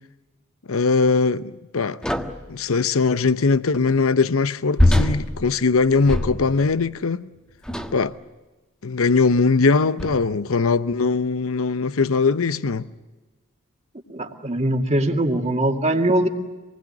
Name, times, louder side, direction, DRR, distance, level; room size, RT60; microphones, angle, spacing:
voice 1, 0.7-2.0 2.5-7.3 7.9-8.1 8.8-12.9, left 4 dB, 75° left, 0.8 m, -20 dB
sound 1, 2.0-2.5 4.8-6.7 7.6-8.1 9.0-9.1 10.0-10.4, left 1 dB, 5° left, 1.4 m, -23 dB
voice 2, 14.1-16.3, right 1 dB, 30° right, 2.3 m, -21 dB
26.5 x 20.0 x 9.6 m
head